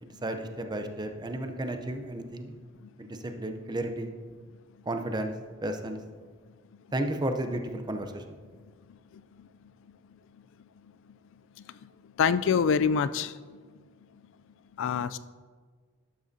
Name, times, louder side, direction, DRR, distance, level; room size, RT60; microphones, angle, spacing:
voice 1, 0.0-2.6 3.0-4.1 4.9-5.3 5.6-6.0 6.9-8.4, right 1 dB, 20° right, 6 dB, 0.6 m, -33 dB
voice 2, 9.1-9.5 11.8-11.9 12.2-13.4 14.8-15.2, left 6 dB, 65° left, 15 dB, 0.3 m, -26 dB
11.5 x 7.6 x 2.7 m, 1.5 s
head